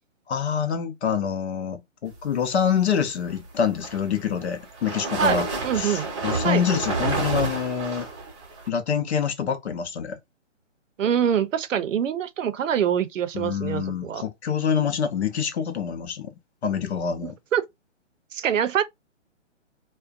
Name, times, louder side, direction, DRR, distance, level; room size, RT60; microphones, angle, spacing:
voice 1, 0.3-5.5 5.7-8.1 8.7-10.2 13.3-16.3 16.6-17.4, left 7 dB, 60° left, 0.7 m, -26 dB
sound 1, 3.6-8.7, right 3 dB, 25° right, 0.8 m, -29 dB
voice 2, 5.2-6.1 6.4-6.6 11.0-14.2 17.2-17.6 18.3-18.8, right 8 dB, 90° right, 0.6 m, -25 dB
2.5 x 2.2 x 2.4 m
hypercardioid pair, 160°, 37 cm